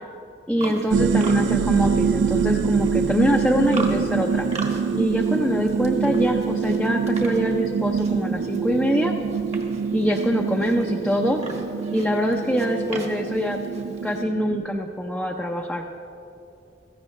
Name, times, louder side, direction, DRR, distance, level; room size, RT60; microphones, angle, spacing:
voice 1, 0.5-4.4 4.9-9.1 9.9-11.4 11.9-13.6 14.0-15.8, equal, 5° left, -1 dB, 0.6 m, -24 dB
Livestock farm animals working animals, 0.6-14.2, right 2 dB, 35° right, 1.5 m, -40 dB
sound 1, 0.9-14.7, right 6 dB, 75° right, 0.3 m, -25 dB
16.5 x 14.5 x 3.2 m, 2.6 s
head